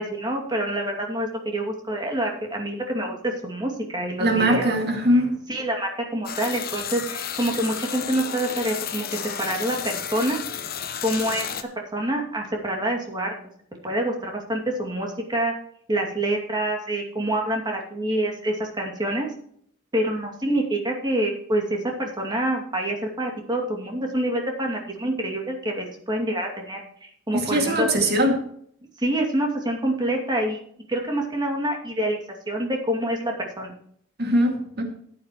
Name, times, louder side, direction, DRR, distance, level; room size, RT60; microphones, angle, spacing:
voice 1, 0.0-4.7 5.1-5.2 5.5-10.4 11.0-11.5 11.9-13.3 13.8-15.5 15.9-19.3 19.9-27.9 29.0-30.6 30.9-32.2 32.5-33.7, right 1 dB, 20° right, 1 dB, 2.4 m, -26 dB
voice 2, 4.2-5.4 27.3-28.4 34.2-34.8, right 1 dB, 55° right, 3 dB, 2.2 m, -21 dB
sound 1, 6.2-11.6, left 8 dB, 50° left, 0.9 m, -32 dB
13.5 x 9.3 x 3.0 m, 0.64 s
head